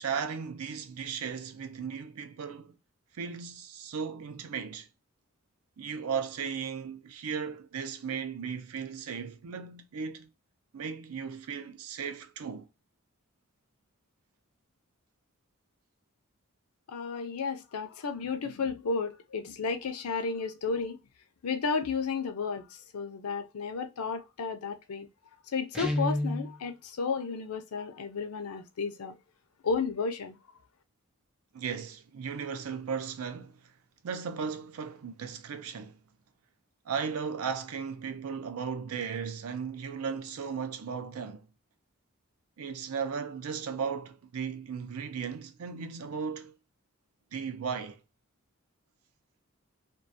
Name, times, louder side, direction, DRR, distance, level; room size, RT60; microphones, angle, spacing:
voice 1, 0.0-2.8 3.2-4.9 5.8-10.3 10.7-12.7 31.5-33.6 34.0-36.0 36.9-41.5 42.6-46.5 47.3-48.0, right 6 dB, 80° right, 0.5 m, -36 dB
voice 2, 16.9-21.0 21.4-22.6 22.9-25.1 25.5-29.2 29.6-30.4, left 5 dB, 90° left, 0.5 m, -33 dB
Guitar, 25.7-26.5, left 1 dB, 5° right, 0.3 m, -29 dB
2.3 x 2.3 x 2.6 m
head